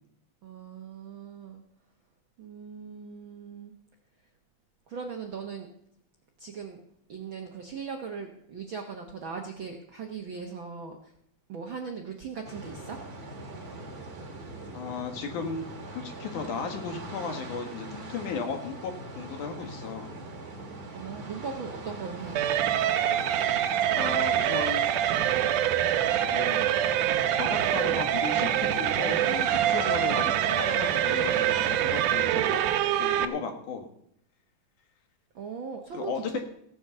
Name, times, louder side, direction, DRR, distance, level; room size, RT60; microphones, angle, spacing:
voice 1, 0.4-1.6 2.4-3.7 4.9-5.7 6.4-6.8 7.1-11.1 11.5-13.0 20.9-22.4 35.3-36.4, right 5 dB, 55° right, 2 dB, 1.5 m, -39 dB
sound 1, 12.4-32.0, right 2 dB, 35° right, 2.1 m, -41 dB
voice 2, 14.7-15.6 15.9-20.1 23.9-25.0 26.0-26.6 27.4-32.6 33.0-33.9 35.9-36.4, left 5 dB, 75° left, 5 dB, 3.2 m, -35 dB
sound 2, 22.4-33.3, right 11 dB, 85° right, 2.3 m, -25 dB
16.5 x 8.7 x 6.7 m, 0.72 s
omnidirectional pair, 3.5 m